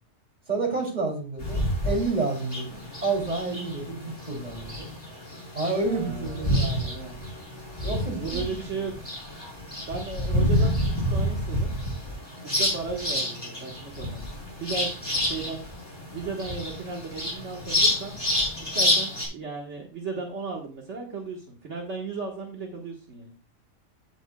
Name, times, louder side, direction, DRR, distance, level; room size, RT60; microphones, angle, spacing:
voice 1, 0.5-4.8 5.5-6.9 7.8-8.8, right 3 dB, 35° right, 1 dB, 3.2 m, -30 dB
sound 1, 1.4-19.2, equal, 20° left, 5.1 m, -28 dB
voice 2, 5.8-7.2 8.1-9.1 9.9-11.7 12.4-14.3 14.6-15.7 16.1-18.2 18.7-23.4, right 4 dB, 65° right, -1 dB, 1.9 m, -36 dB
15.5 x 7.2 x 2.3 m, 0.33 s
omnidirectional pair, 1.3 m